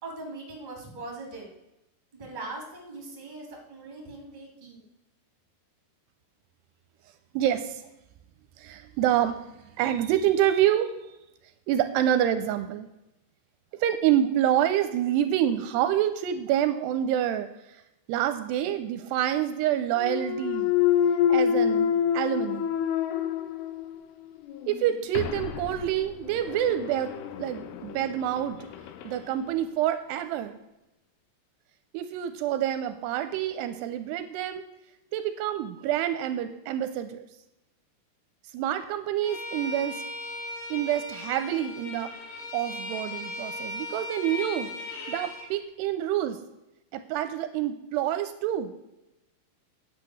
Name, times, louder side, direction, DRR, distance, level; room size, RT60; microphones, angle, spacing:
voice 1, 0.0-1.5 2.2-4.8, right 2 dB, 15° right, 0 dB, 2.1 m, -40 dB
voice 2, 7.3-7.8 8.6-9.4 9.8-10.9 11.7-12.9 13.7-17.5 18.1-20.7 21.3-22.7 24.7-27.1 27.4-28.6 29.0-30.6 31.9-34.6 35.1-37.3 38.5-40.0 40.7-42.1 42.5-44.7 45.1-46.4 46.9-48.7, right 11 dB, 85° right, 10 dB, 2.6 m, -27 dB
Thump thud, 20.0-24.0 24.5-29.2, left 9 dB, 80° left, 2.7 m, -28 dB
Bowed string instrument, 39.2-45.5, left 2 dB, 55° left, 3.4 m, -37 dB
9.6 x 8.3 x 6.2 m, 0.91 s
omnidirectional pair, 5.0 m